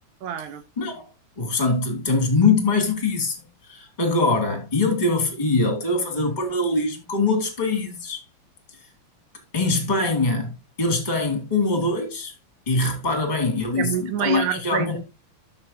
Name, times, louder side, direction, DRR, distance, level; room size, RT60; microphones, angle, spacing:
voice 1, 0.2-0.6 13.8-15.0, right 9 dB, 75° right, 2.0 m, -27 dB
voice 2, 1.4-3.4 3.7-8.2 9.5-10.5 10.8-12.3 12.7-15.0, left 3 dB, 15° left, 2.2 m, -23 dB
13.0 x 7.1 x 2.7 m
omnidirectional pair, 3.8 m